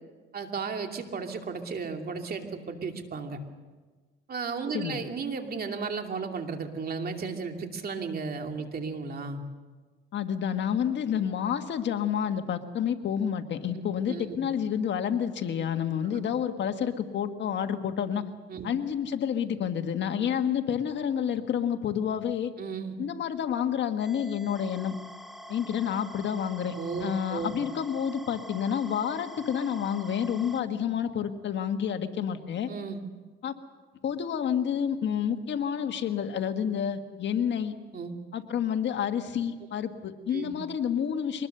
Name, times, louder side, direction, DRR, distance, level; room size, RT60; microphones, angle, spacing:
voice 1, 0.3-3.4 4.3-9.4 14.1-14.4 16.0-16.2 18.5-18.7 22.6-22.9 26.8-27.5 32.7-33.0 37.9-38.1 40.3-40.5, right 5 dB, 50° right, 4 dB, 2.7 m, -34 dB
voice 2, 10.1-18.2 18.6-22.5 23.0-25.0 25.5-32.7 33.4-33.5 34.0-37.7 38.3-41.5, left 8 dB, 65° left, 7 dB, 1.6 m, -29 dB
sound 1, 24.0-30.6, equal, ahead, 1.8 m, -46 dB
23.5 x 20.0 x 6.8 m, 1.3 s
cardioid pair, 90°, 20 cm